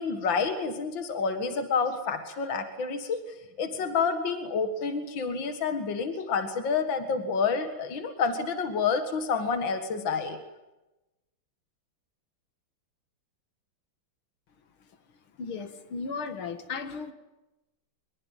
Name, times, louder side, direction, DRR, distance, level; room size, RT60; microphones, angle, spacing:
voice 1, 0.0-3.2 3.6-10.4, left 5 dB, 65° left, 8 dB, 2.5 m, -29 dB
voice 2, 15.4-17.1, left 5 dB, 85° left, 9 dB, 2.7 m, -35 dB
24.5 x 22.5 x 9.2 m, 1.0 s
omnidirectional pair, 2.2 m